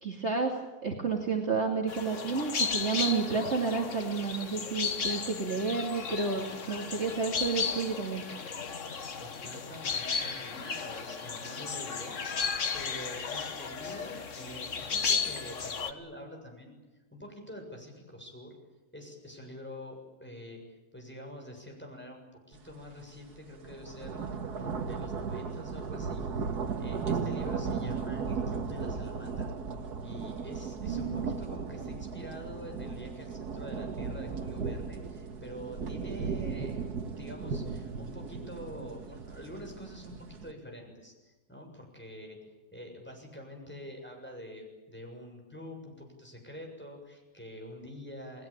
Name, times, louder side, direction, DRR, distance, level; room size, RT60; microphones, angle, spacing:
voice 1, 0.0-8.2 30.8-31.4, right 4 dB, 40° right, 0 dB, 2.8 m, -31 dB
sound 1, 1.9-15.9, left 5 dB, 50° left, 1.7 m, -34 dB
voice 2, 9.2-12.5 12.7-16.8 17.1-18.6 18.9-24.2 24.5-29.5 30.0-36.9 37.2-48.5, equal, 5° left, 2 dB, 7.3 m, -46 dB
sound 2, 22.7-22.9 23.2-40.5, right 5 dB, 70° right, 2.1 m, -36 dB
30.0 x 20.0 x 8.9 m, 1.1 s
omnidirectional pair, 1.8 m